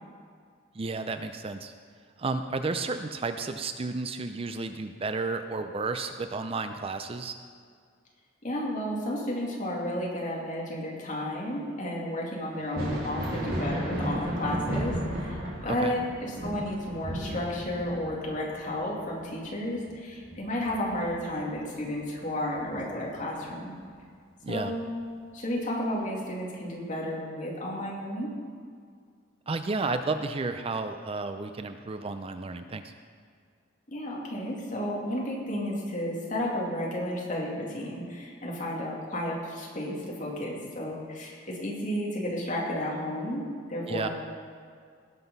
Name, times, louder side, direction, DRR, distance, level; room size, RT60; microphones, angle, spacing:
voice 1, 0.7-1.7 2.2-7.3 15.8-15.9 24.4-24.7 29.5-32.9 43.9-44.1, right 3 dB, 30° right, 8 dB, 0.5 m, -32 dB
voice 2, 8.4-23.8 24.5-25.0 25.3-28.3 33.9-44.1, left 1 dB, 45° left, -3 dB, 2.5 m, -32 dB
Thunder, 12.6-21.9 22.3-23.5 25.1-25.2 26.0-26.1, equal, 55° right, 2.7 m, -35 dB
18.0 x 6.0 x 5.4 m, 2.1 s
head